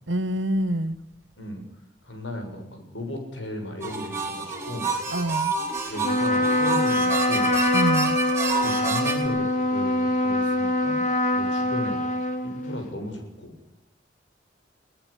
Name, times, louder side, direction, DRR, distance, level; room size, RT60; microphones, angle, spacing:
voice 1, 0.1-1.0 5.1-5.6 7.7-8.2, right 1 dB, 90° right, 14 dB, 1.2 m, -26 dB
voice 2, 2.0-4.9 5.9-7.5 8.6-12.0 12.4-13.5, left 1 dB, 85° left, 4 dB, 7.0 m, -35 dB
sound 1, 3.8-9.3, right 4 dB, 15° right, 4.7 m, -29 dB
Trumpet, 6.0-12.8, left 1 dB, 40° left, 3.8 m, -24 dB
22.0 x 18.5 x 8.6 m, 0.86 s
head